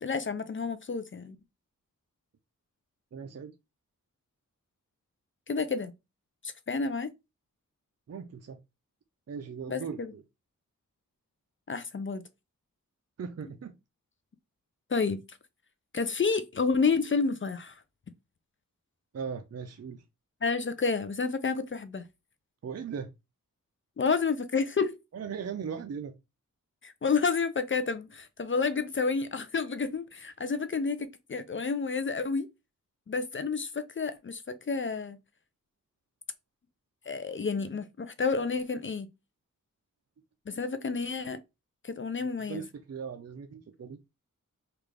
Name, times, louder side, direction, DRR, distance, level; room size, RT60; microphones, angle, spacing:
voice 1, 0.0-1.4 5.5-5.9 6.4-7.1 9.7-10.1 11.7-12.2 14.9-15.2 15.9-17.8 20.4-22.0 24.0-25.0 26.8-32.5 33.1-35.2 37.1-39.1 40.5-41.4 41.8-42.6, left 4 dB, 40° left, 0.4 m, -30 dB
voice 2, 3.1-3.5 8.1-8.6 9.3-10.2 13.2-13.7 19.1-20.0 22.6-23.1 25.1-26.1 42.2-44.0, right 6 dB, 50° right, 0.5 m, -38 dB
3.4 x 2.4 x 3.2 m
wide cardioid pair, 55°, 33 cm